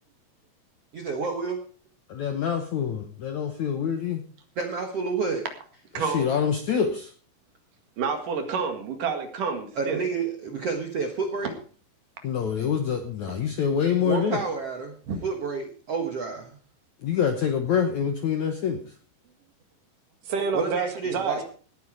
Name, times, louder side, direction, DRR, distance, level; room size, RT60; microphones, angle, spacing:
voice 1, 0.9-1.6 4.6-5.5 9.7-11.5 14.0-14.9 15.2-16.6 20.5-21.4, right 4 dB, 90° right, 4 dB, 1.3 m, -29 dB
voice 2, 2.1-4.2 6.0-7.1 12.2-14.4 17.0-18.8, left 7 dB, 75° left, 6 dB, 1.7 m, -26 dB
voice 3, 5.9-6.3 8.0-10.0 15.1-15.2 20.3-20.9 21.1-21.4, right 5 dB, 55° right, 6 dB, 3.1 m, -28 dB
18.0 x 9.7 x 4.9 m, 0.41 s
omnidirectional pair, 5.1 m